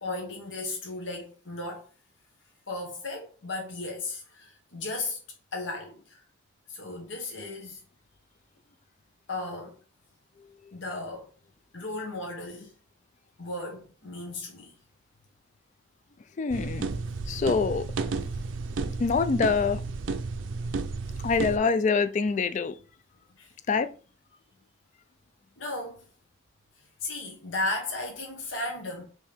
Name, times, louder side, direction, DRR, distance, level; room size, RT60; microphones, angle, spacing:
voice 1, 0.0-1.8 2.7-5.2 5.5-6.0 6.7-7.8 9.3-9.7 10.7-11.3 11.7-12.7 13.4-14.7 23.4-23.5 25.6-26.0 27.0-29.0, left 2 dB, 75° left, 1.2 m, -35 dB
voice 2, 16.4-16.9 17.3-17.9 19.0-19.8 21.2-22.8 23.7-23.9, left 5 dB, 40° left, 0.3 m, -25 dB
sound 1, 16.5-21.6, right 4 dB, 75° right, 0.4 m, -32 dB
4.6 x 3.2 x 3.4 m
head